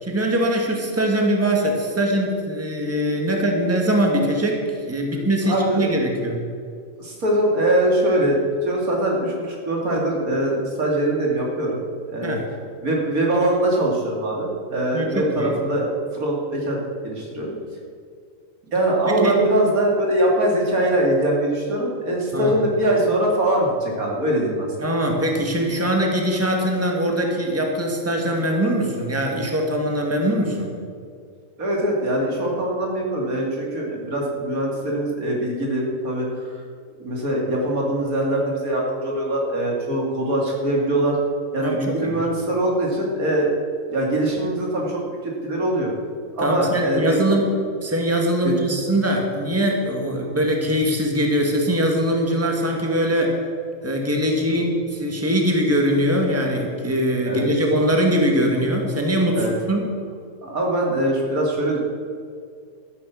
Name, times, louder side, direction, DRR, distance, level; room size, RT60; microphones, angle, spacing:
voice 1, 0.0-4.6 4.9-6.4 12.2-12.5 14.9-15.5 19.1-19.4 22.3-22.5 24.8-30.7 41.6-42.2 46.4-47.6 47.8-53.3 53.8-59.8, equal, 10° right, 1 dB, 1.9 m, -22 dB
voice 2, 5.4-5.9 7.0-8.4 8.6-11.8 12.1-12.4 12.8-16.8 17.0-17.6 18.7-24.7 31.6-36.6 37.0-41.2 41.5-43.5 43.9-45.9 46.3-47.2 48.4-48.8 57.3-57.5 59.3-59.5 60.4-61.8, right 1 dB, 80° right, -2 dB, 3.0 m, -22 dB
13.0 x 10.5 x 7.1 m, 2.2 s
omnidirectional pair, 1.5 m